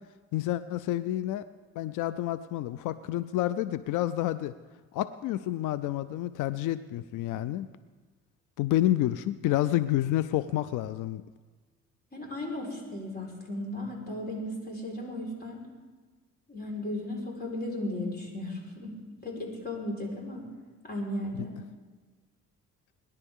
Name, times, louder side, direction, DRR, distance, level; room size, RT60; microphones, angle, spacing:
voice 1, 0.3-1.4 1.8-4.5 4.9-7.7 8.6-11.2 21.4-21.5, left 14 dB, 90° left, 14 dB, 0.5 m, -29 dB
voice 2, 12.1-15.7 16.5-20.5 20.8-21.6, left 1 dB, 30° left, -1 dB, 4.4 m, -36 dB
22.0 x 11.0 x 3.6 m, 1.3 s
cardioid pair, 90°, 30 cm